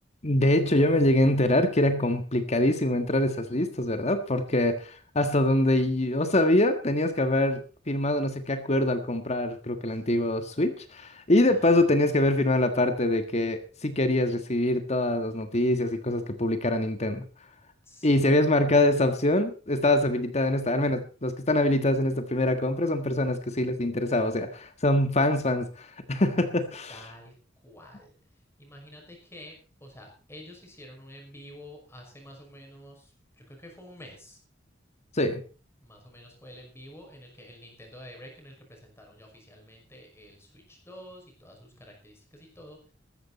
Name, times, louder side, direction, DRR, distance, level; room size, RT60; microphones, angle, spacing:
voice 1, 0.2-7.6 7.9-17.2 18.0-27.0 35.2-35.4, left 1 dB, 35° left, 8 dB, 1.6 m, -24 dB
voice 2, 11.5-11.8 17.8-18.2 26.9-27.3 27.6-28.1 28.6-29.5 29.8-33.1 33.4-34.4 35.8-42.9, equal, 15° left, 1 dB, 5.8 m, -48 dB
14.5 x 14.0 x 4.2 m, 0.36 s
head